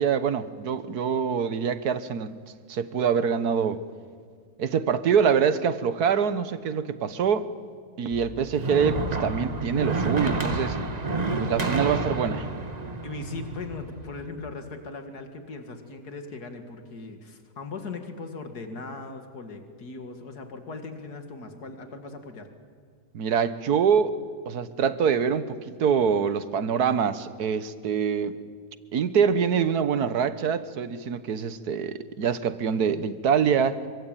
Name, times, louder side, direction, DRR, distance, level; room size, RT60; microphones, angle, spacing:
voice 1, 0.0-2.3 2.7-3.8 4.6-7.5 8.0-10.8 11.4-12.5 23.1-24.2 24.5-28.4 28.9-33.8, right 7 dB, 80° right, 13 dB, 1.7 m, -25 dB
sound 1, 8.1-14.3, right 3 dB, 25° right, 1.5 m, -29 dB
voice 2, 13.0-22.5, left 3 dB, 85° left, 6 dB, 2.6 m, -39 dB
26.5 x 24.5 x 9.1 m, 2.1 s
omnidirectional pair, 1.6 m